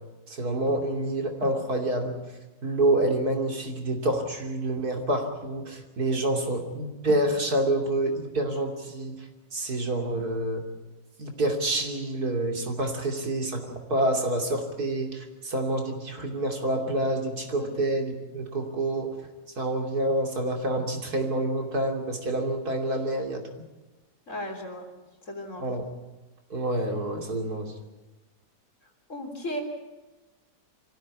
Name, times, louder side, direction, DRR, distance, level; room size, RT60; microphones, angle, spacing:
voice 1, 0.4-2.1 2.6-9.1 9.5-10.6 11.2-15.1 15.4-19.1 19.6-23.4 25.6-25.8 26.5-27.7, right 1 dB, 60° right, 3 dB, 3.4 m, -27 dB
voice 2, 24.3-24.9 25.3-25.8 29.1-29.6, left 1 dB, 45° left, 3 dB, 3.8 m, -35 dB
25.0 x 15.5 x 8.6 m, 1.1 s
omnidirectional pair, 1.8 m